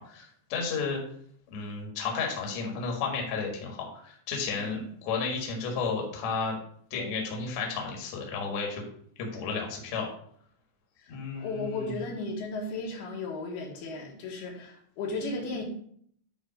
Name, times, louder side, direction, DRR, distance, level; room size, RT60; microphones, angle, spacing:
voice 1, 0.1-1.0 1.5-6.6 6.9-8.8 9.2-10.1 11.1-12.0, left 5 dB, 55° left, 1 dB, 2.4 m, -32 dB
voice 2, 11.0-15.6, left 3 dB, 70° left, -1 dB, 3.2 m, -35 dB
10.5 x 3.6 x 5.1 m, 0.62 s
omnidirectional pair, 4.7 m